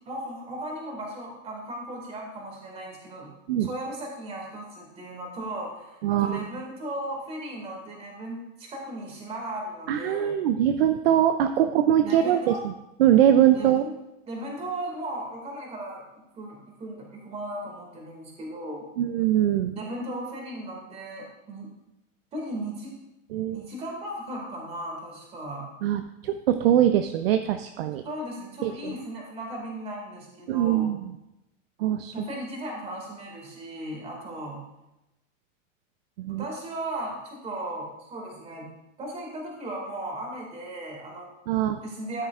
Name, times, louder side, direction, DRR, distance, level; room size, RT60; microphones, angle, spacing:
voice 1, 0.0-3.3 3.6-10.4 12.0-12.6 13.5-13.7 14.3-18.9 19.7-21.7 22.3-23.0 23.5-25.7 28.0-30.9 32.1-34.6 36.3-38.7 39.0-41.3 41.8-42.3, right 1 dB, 15° right, 0 dB, 2.1 m, -36 dB
voice 2, 6.0-6.5 9.9-12.7 13.0-13.8 19.0-19.8 23.3-23.6 25.8-28.0 28.6-28.9 30.5-31.2 31.8-32.1 36.2-36.4 41.5-41.8, right 11 dB, 50° right, 8 dB, 0.5 m, -22 dB
13.0 x 9.7 x 2.4 m, 0.91 s
supercardioid pair, 165°, 39 cm